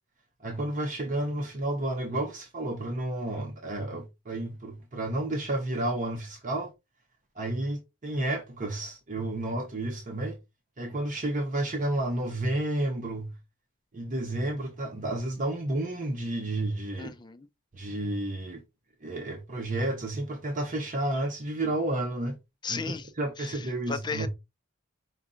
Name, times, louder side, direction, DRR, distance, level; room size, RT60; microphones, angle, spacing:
voice 1, 0.4-6.7 7.4-10.4 10.8-13.3 13.9-17.1 17.7-18.6 19.0-22.4 22.7-24.3, right 1 dB, 35° right, 0.8 m, -31 dB
voice 2, 17.0-17.5 22.6-23.1 23.4-24.3, left 4 dB, 20° left, 0.4 m, -35 dB
5.2 x 2.4 x 3.8 m
head